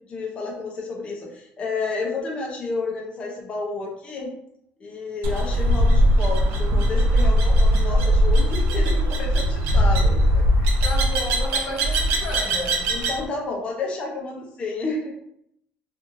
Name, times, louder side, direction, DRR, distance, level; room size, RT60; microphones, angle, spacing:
voice 1, 0.1-4.3 4.8-10.8 12.9-15.1, left 3 dB, 30° left, -1 dB, 0.5 m, -31 dB
sound 1, 5.2-13.2, equal, 75° right, 0.6 m, -20 dB
voice 2, 10.8-12.9, left 1 dB, 80° left, -1 dB, 0.8 m, -32 dB
2.9 x 2.5 x 2.5 m, 0.74 s
cardioid pair, 130°, 4 cm